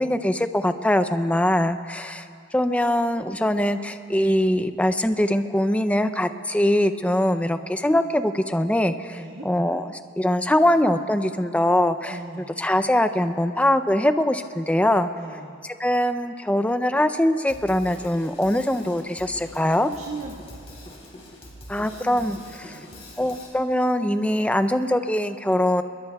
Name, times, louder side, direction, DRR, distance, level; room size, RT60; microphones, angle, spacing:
voice 1, 0.0-2.3 2.5-9.2 9.4-12.1 12.6-15.1 15.8-19.9 21.7-22.4 22.7-22.8 23.2-25.8, left 1 dB, 5° left, 9 dB, 0.5 m, -22 dB
voice 2, 9.1-9.5 12.1-12.7 15.1-15.6 19.9-21.1 21.8-23.0, right 3 dB, 80° right, -5 dB, 1.8 m, -40 dB
Drum kit, 17.5-23.5, left 1 dB, 30° left, 3.7 m, -44 dB
27.0 x 22.0 x 2.3 m, 2.4 s
head